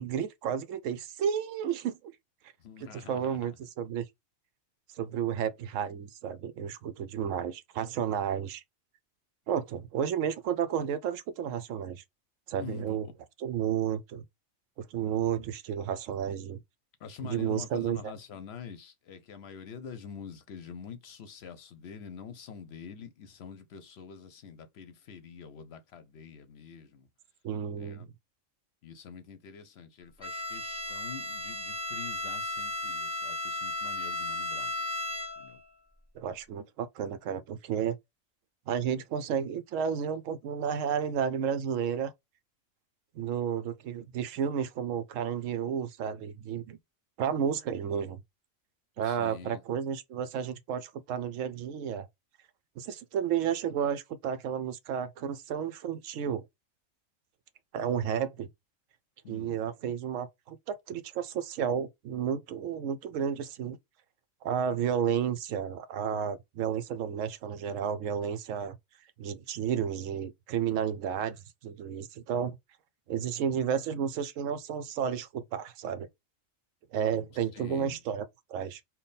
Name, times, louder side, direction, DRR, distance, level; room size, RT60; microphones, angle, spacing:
voice 1, 0.0-2.1 2.8-4.0 5.0-8.6 9.5-12.0 12.5-13.1 13.4-14.2 14.8-16.6 17.2-18.0 27.4-28.1 36.2-38.0 38.7-42.1 43.1-46.8 47.2-48.2 49.0-52.1 52.8-56.5 57.7-58.5 59.3-63.8 64.4-68.8 69.2-71.4 71.6-72.6 73.1-76.1 76.9-78.2 78.5-78.8, right 8 dB, 75° right, 0.9 m, -32 dB
voice 2, 2.6-3.6 12.6-13.0 17.0-27.1 27.7-28.1 28.8-34.7 35.4-35.6 49.0-49.6 59.2-59.5 77.5-78.0, left 7 dB, 60° left, 0.8 m, -46 dB
Bowed string instrument, 30.2-35.6, left 2 dB, 5° right, 0.9 m, -35 dB
3.5 x 2.2 x 4.0 m
omnidirectional pair, 1.4 m